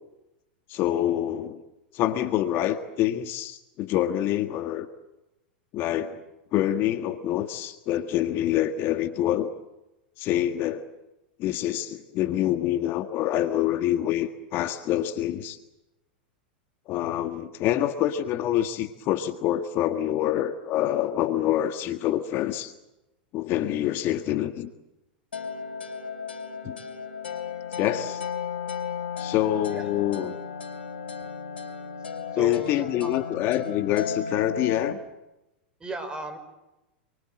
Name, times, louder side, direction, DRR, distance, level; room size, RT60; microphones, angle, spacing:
voice 1, 0.7-1.6 1.9-4.9 5.7-6.2 6.5-9.5 10.2-10.9 11.4-15.6 16.9-22.7 23.3-24.7 26.6-26.8 27.8-28.2 29.2-30.3 32.4-35.0, left 12 dB, 45° left, 8 dB, 1.6 m, -26 dB
sound 1, 25.3-34.9, left 6 dB, 85° left, 3.8 m, -34 dB
voice 2, 32.3-33.1 35.8-36.4, right 2 dB, 15° right, 9 dB, 5.3 m, -35 dB
28.5 x 23.5 x 7.7 m, 0.97 s
hypercardioid pair, 105°, 5 cm